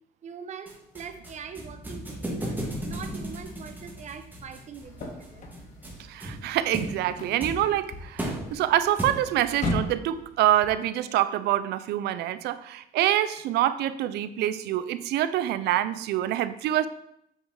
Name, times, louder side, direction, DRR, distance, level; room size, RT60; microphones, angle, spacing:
voice 1, 0.2-5.4, right 6 dB, 45° right, 8 dB, 0.8 m, -42 dB
sound 1, 0.7-9.5, right 1 dB, 10° right, 1.7 m, -37 dB
sound 2, 4.8-10.7, left 2 dB, 45° left, 1.6 m, -38 dB
voice 2, 6.1-16.9, right 12 dB, 75° right, 13 dB, 0.5 m, -26 dB
8.0 x 4.7 x 3.8 m, 0.78 s
cardioid pair, 110°, 17 cm